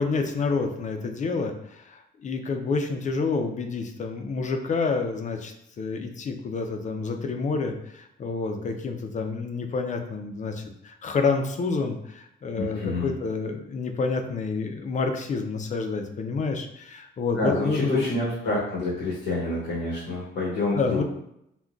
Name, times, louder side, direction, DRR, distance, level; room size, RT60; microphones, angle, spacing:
voice 1, 0.0-18.0 20.7-21.0, left 4 dB, 40° left, 5 dB, 0.4 m, -28 dB
voice 2, 12.6-13.1 17.3-21.0, left 2 dB, 90° left, -7 dB, 0.9 m, -28 dB
3.7 x 2.1 x 2.3 m, 0.78 s
cardioid pair, 90°, 20 cm